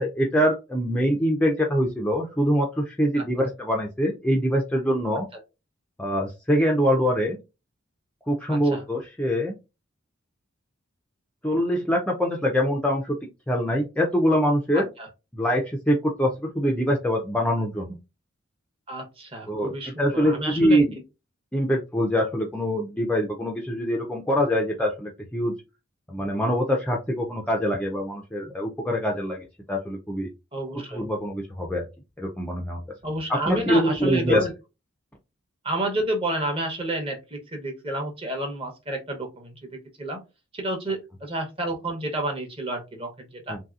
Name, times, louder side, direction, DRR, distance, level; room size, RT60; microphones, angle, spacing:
voice 1, 0.0-5.3 6.0-7.4 8.3-9.6 11.4-13.2 13.5-14.9 15.3-18.0 19.5-19.7 20.0-21.0 21.5-25.5 26.1-30.3 30.7-31.8 32.2-32.8 33.3-34.4 43.5-43.6, equal, 5° left, 0 dB, 0.4 m, -24 dB
voice 2, 3.2-3.5 8.5-8.8 14.7-15.1 18.9-20.8 30.5-31.0 33.0-34.5 35.6-40.2 40.5-43.6, right 1 dB, 25° right, 2 dB, 0.8 m, -30 dB
3.1 x 2.7 x 2.4 m, 0.26 s
head